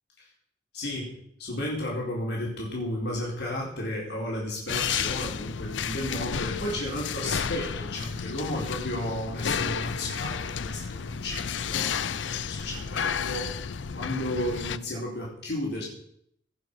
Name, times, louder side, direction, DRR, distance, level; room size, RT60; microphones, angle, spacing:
voice 1, 0.7-13.5 13.9-15.8, left 1 dB, 65° left, -4 dB, 4.5 m, -33 dB
sound 1, 4.7-14.8, left 7 dB, 85° left, 0.6 m, -32 dB
17.5 x 7.0 x 6.8 m, 0.71 s
head